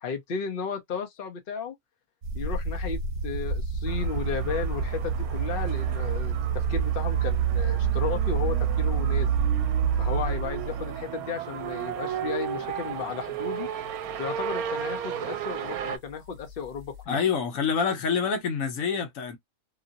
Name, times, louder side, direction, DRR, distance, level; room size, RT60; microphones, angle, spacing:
voice 1, 0.0-1.7 2.3-9.4 10.0-13.7 14.2-17.2, left 6 dB, 50° left, 0.7 m, -34 dB
sound 1, 2.2-11.0 11.7-12.1 12.7-12.8 16.4-17.0, right 7 dB, 45° right, 0.9 m, -27 dB
sound 2, 3.9-16.0, right 9 dB, 75° right, 1.0 m, -35 dB
voice 2, 17.1-19.4, left 6 dB, 70° left, 1.2 m, -26 dB
2.9 x 2.6 x 2.6 m
omnidirectional pair, 1.6 m